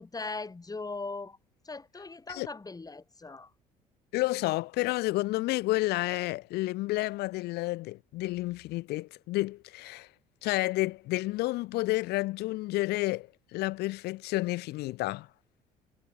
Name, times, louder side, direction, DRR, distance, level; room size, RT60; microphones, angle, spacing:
voice 1, 0.0-1.4 1.6-3.5, left 3 dB, 20° left, 4.0 m, -39 dB
voice 2, 4.1-10.1 10.4-15.3, left 19 dB, 55° left, 1.8 m, -30 dB
figure-of-eight pair, 55°, 20 cm